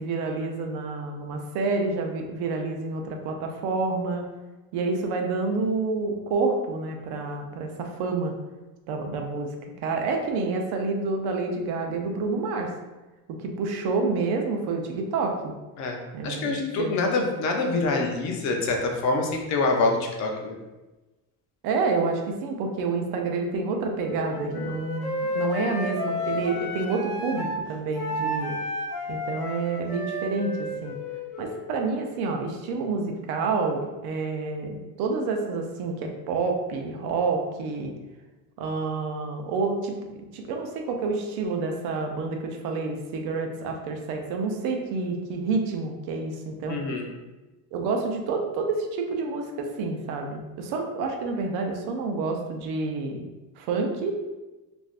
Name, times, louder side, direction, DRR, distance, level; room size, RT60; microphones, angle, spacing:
voice 1, 0.0-4.3 4.7-8.3 8.9-9.5 9.8-12.7 13.4-15.5 16.1-17.0 21.6-28.5 29.1-31.0 31.4-37.9 38.6-40.0 40.3-46.8 47.7-53.2 53.6-54.1, right 3 dB, 60° right, 3 dB, 0.6 m, -28 dB
voice 2, 16.2-20.6 46.7-47.1, left 3 dB, 45° left, 2 dB, 0.4 m, -25 dB
Wind instrument woodwind instrument, 24.0-27.6 27.9-31.7, left 1 dB, 90° left, 0.8 m, -32 dB
3.3 x 2.5 x 2.4 m, 1.1 s
cardioid pair, 145°, 43 cm